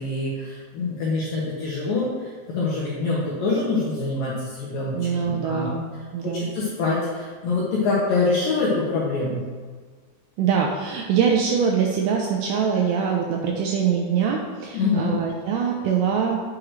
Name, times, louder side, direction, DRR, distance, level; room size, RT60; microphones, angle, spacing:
voice 1, 0.0-5.7 6.2-9.4 14.7-15.2, left 3 dB, 75° left, -6 dB, 2.1 m, -25 dB
voice 2, 4.9-5.8 6.1-6.5 10.4-16.4, right 7 dB, 85° right, 0 dB, 2.4 m, -23 dB
9.6 x 6.3 x 3.2 m, 1.5 s
omnidirectional pair, 5.6 m